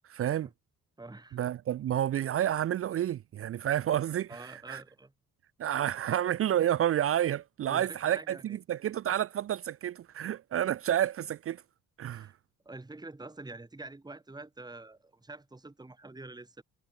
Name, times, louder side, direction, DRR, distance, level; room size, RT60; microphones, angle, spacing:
voice 1, 0.1-0.5 1.3-4.8 5.6-11.6 12.0-12.3, right 11 dB, 50° right, 0.5 m, -30 dB
voice 2, 1.0-1.4 4.3-5.1 7.7-8.6 12.1-12.3 12.6-16.6, right 2 dB, 15° right, 2.6 m, -46 dB
cardioid pair, 90°, 30 cm